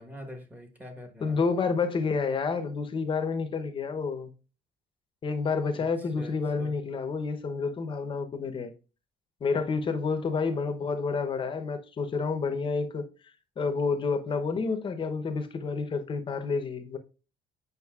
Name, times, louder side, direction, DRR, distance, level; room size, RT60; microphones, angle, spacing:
voice 1, 0.0-1.4 5.7-5.9 6.2-6.7, left 1 dB, 10° right, 1.2 m, -44 dB
voice 2, 1.2-4.3 5.2-8.7 9.4-13.1 13.6-17.0, left 4 dB, 35° left, 0.8 m, -29 dB
8.1 x 5.1 x 2.4 m
cardioid pair, 130°, 15 cm